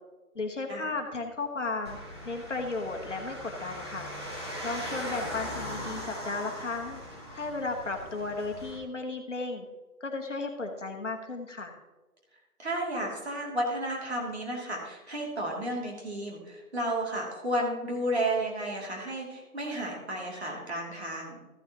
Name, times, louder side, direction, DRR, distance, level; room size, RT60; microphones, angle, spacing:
voice 1, 0.3-2.0 2.2-4.1 4.6-7.0 7.3-9.6 10.0-11.7, left 3 dB, 50° left, 2 dB, 1.6 m, -34 dB
sound 1, 1.8-8.8, equal, 15° right, 1.3 m, -39 dB
voice 2, 12.6-21.4, right 1 dB, 45° right, -2 dB, 3.0 m, -32 dB
14.5 x 8.6 x 3.0 m, 1.2 s
figure-of-eight pair, 170°, 46 cm